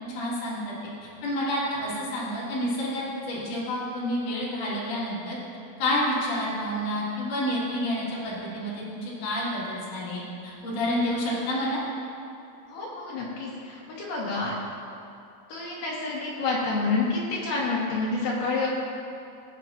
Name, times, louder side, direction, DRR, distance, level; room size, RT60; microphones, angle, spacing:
voice 1, 0.1-0.7 1.0-5.4 5.8-11.8, left 1 dB, 45° left, -8 dB, 3.7 m, -29 dB
voice 2, 12.7-14.5 15.5-18.7, left 3 dB, 70° left, -5 dB, 2.1 m, -28 dB
20.0 x 7.6 x 2.5 m, 2.6 s
omnidirectional pair, 5.6 m